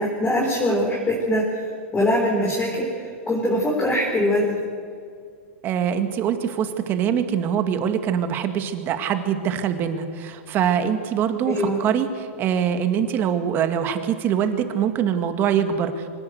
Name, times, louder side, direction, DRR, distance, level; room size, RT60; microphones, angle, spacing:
voice 1, 0.0-4.6 11.4-11.8, left 1 dB, 15° left, -3 dB, 4.2 m, -23 dB
voice 2, 5.6-16.1, right 8 dB, 30° right, 8 dB, 1.9 m, -23 dB
25.0 x 17.0 x 8.2 m, 2.2 s
supercardioid pair, 150°, 7 cm